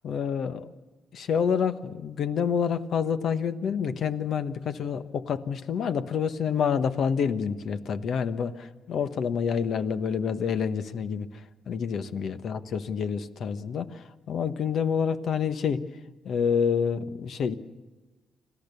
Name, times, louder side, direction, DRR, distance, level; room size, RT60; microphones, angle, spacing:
voice 1, 0.0-0.7 1.1-11.3 11.7-15.8 16.2-17.5, left 7 dB, 65° left, 10 dB, 1.2 m, -28 dB
26.5 x 16.0 x 6.9 m, 1.2 s
cardioid pair, 90°, 0 cm